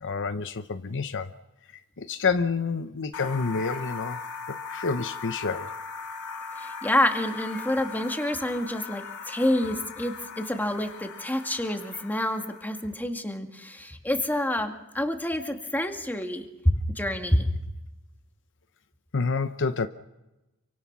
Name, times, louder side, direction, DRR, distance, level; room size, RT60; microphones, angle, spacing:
voice 1, 0.0-1.3 2.0-4.2 4.5-5.7 19.1-19.9, left 4 dB, 55° left, 10 dB, 0.8 m, -28 dB
sound 1, 3.1-12.9, left 5 dB, 75° left, 2.2 m, -39 dB
voice 2, 6.6-17.5, left 1 dB, 10° left, 4 dB, 2.0 m, -28 dB
27.5 x 25.0 x 6.1 m, 1.0 s
head